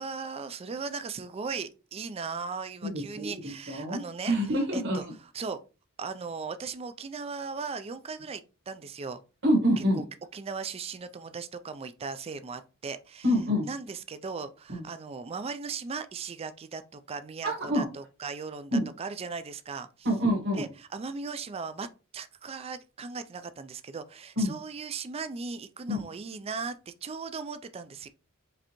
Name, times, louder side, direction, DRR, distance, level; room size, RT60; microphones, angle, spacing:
voice 1, 0.0-4.4 4.7-5.0 5.3-5.6 6.0-9.2 10.3-13.2 13.6-19.9 20.6-21.9 22.1-28.1, right 5 dB, 30° right, 0.4 m, -37 dB
voice 2, 2.8-5.1 9.4-10.0 13.2-13.7 14.7-14.8 17.4-17.8 18.7-18.9 20.0-20.6 24.4-24.5 25.9-26.0, equal, 55° right, 1.5 m, -27 dB
4.9 x 3.3 x 3.0 m
head